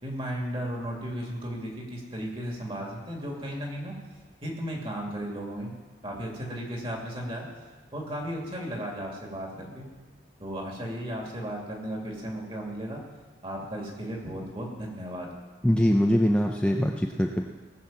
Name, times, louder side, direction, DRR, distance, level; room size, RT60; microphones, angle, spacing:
voice 1, 0.0-3.9 4.4-5.7 6.0-7.5 7.9-9.9 10.4-13.0 13.4-15.3, equal, 30° right, -1 dB, 2.6 m, -35 dB
voice 2, 15.6-17.5, equal, 5° left, 1 dB, 0.6 m, -23 dB
18.5 x 6.4 x 7.5 m, 1.4 s
head